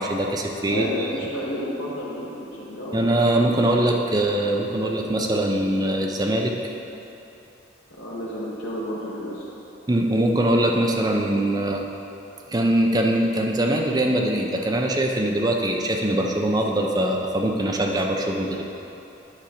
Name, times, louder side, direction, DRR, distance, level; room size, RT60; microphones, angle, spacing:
voice 1, 0.0-0.9 2.9-6.5 9.9-11.8 12.5-18.6, right 1 dB, 20° right, 1 dB, 0.5 m, -22 dB
voice 2, 0.7-3.0 8.0-9.5, equal, 70° left, -7 dB, 1.2 m, -31 dB
8.9 x 5.0 x 4.3 m, 2.9 s
head